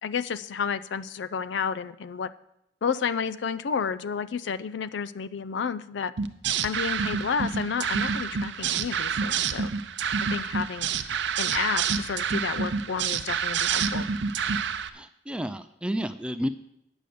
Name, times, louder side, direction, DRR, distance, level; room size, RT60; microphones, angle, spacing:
voice 1, 0.0-2.3 2.8-6.1 6.6-9.7 10.3-10.9 11.4-14.1, left 6 dB, 80° left, 16 dB, 0.4 m, -31 dB
sound 1, 6.2-14.9, right 6 dB, 80° right, 0.6 m, -28 dB
voice 2, 14.9-16.5, equal, 5° right, 11 dB, 0.3 m, -31 dB
9.0 x 6.5 x 6.8 m, 0.77 s
head